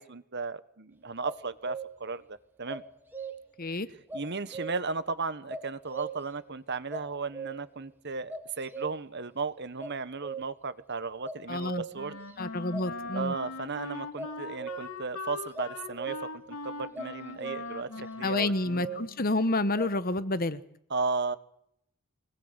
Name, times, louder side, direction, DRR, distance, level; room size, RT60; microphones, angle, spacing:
voice 1, 0.0-2.8 4.1-12.2 13.1-16.2 16.5-18.9 20.9-21.4, right 4 dB, 50° right, 1.3 m, -35 dB
sound 1, 1.2-2.2 2.7-3.6 4.1-5.0 5.5-6.4 6.9-7.8 8.3-9.2 9.8-10.7 11.2-12.3 12.7-13.6 14.2-15.1 15.5-16.5 16.9-17.9 18.4-19.3 19.8-20.0, right 4 dB, 10° right, 2.3 m, -40 dB
voice 2, 11.5-11.8 12.4-13.3 18.2-20.6, left 2 dB, 40° left, 1.1 m, -29 dB
Wind instrument woodwind instrument, 11.9-19.3, left 3 dB, 75° left, 3.1 m, -41 dB
24.5 x 20.0 x 8.2 m
head